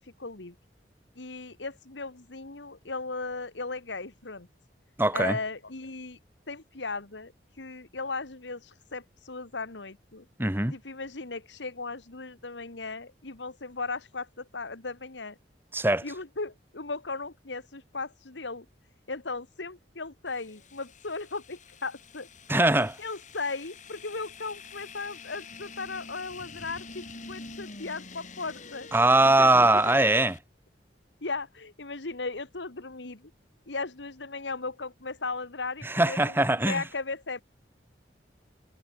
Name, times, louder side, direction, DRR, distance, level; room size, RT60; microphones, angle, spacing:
voice 1, 0.2-0.6 1.2-4.5 5.1-6.2 6.5-7.3 7.6-10.3 10.7-15.4 16.0-18.7 19.1-22.3 23.0-28.9 29.2-29.9 31.2-33.3 33.7-36.3 36.7-37.4, left 3 dB, 85° left, 1.9 m, -37 dB
voice 2, 5.0-5.4 10.4-10.7 15.7-16.0 22.5-23.0 28.9-30.4 35.8-36.8, right 2 dB, 10° right, 1.7 m, -22 dB
sound 1, 20.3-30.4, left 4 dB, 45° left, 4.7 m, -47 dB
head